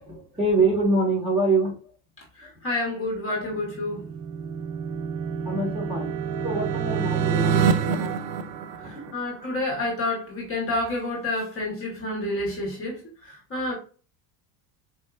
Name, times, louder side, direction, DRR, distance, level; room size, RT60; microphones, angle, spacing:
voice 1, 0.0-1.8 2.4-2.5 5.4-6.1 6.4-8.2 8.4-8.5 8.8-9.1, right 2 dB, 10° right, -4 dB, 1.6 m, -25 dB
voice 2, 2.4-4.0 8.8-13.7, left 2 dB, 30° left, -1 dB, 1.3 m, -29 dB
sound 1, 3.6-9.4, right 6 dB, 80° right, 0.7 m, -27 dB
4.5 x 2.7 x 2.4 m, 0.38 s
cardioid pair, 135°, 47 cm